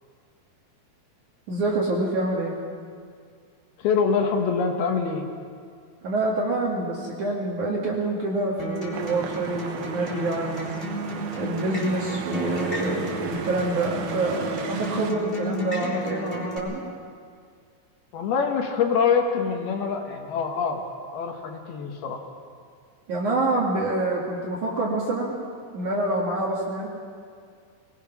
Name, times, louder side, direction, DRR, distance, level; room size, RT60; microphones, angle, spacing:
voice 1, 1.5-2.6 6.0-10.7 11.4-16.8 23.1-25.3 25.7-26.9, right 2 dB, 50° right, -3 dB, 3.0 m, -26 dB
voice 2, 3.8-5.3 18.1-20.8 21.1-22.2, left 6 dB, 70° left, 3 dB, 3.2 m, -24 dB
Acoustic guitar, 8.6-16.6, right 1 dB, 15° left, 3.6 m, -33 dB
sound 1, 8.9-15.1, right 9 dB, 85° right, 3.1 m, -37 dB
22.0 x 20.0 x 6.0 m, 2.2 s
omnidirectional pair, 4.9 m